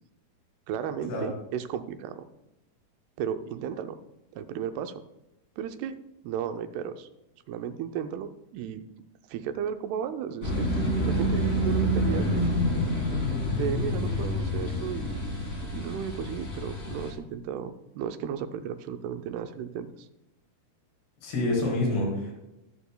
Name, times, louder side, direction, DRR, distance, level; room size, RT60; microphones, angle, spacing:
voice 1, 0.7-2.3 3.2-4.0 4.3-5.0 5.6-6.0 6.2-7.1 7.5-8.8 9.3-12.6 13.6-15.2 15.7-20.1, right 8 dB, 85° right, 9 dB, 2.6 m, -34 dB
sound 1, 10.4-17.1, equal, 25° left, 2.2 m, -28 dB
voice 2, 21.2-22.4, left 1 dB, 90° left, -2 dB, 6.2 m, -27 dB
21.0 x 7.0 x 2.2 m, 0.92 s
omnidirectional pair, 4.6 m